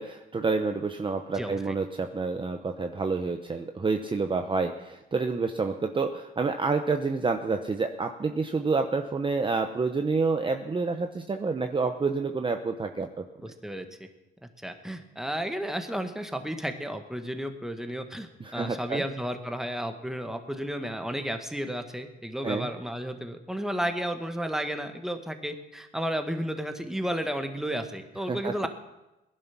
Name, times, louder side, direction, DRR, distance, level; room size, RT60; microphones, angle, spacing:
voice 1, 0.0-13.5 18.4-19.0 22.4-22.7 28.3-28.7, right 4 dB, 25° right, 6 dB, 0.9 m, -28 dB
voice 2, 1.3-1.7 13.4-14.1 14.6-28.7, equal, ahead, 6 dB, 1.6 m, -33 dB
17.5 x 11.0 x 6.0 m, 0.98 s
cardioid pair, 90°, 20 cm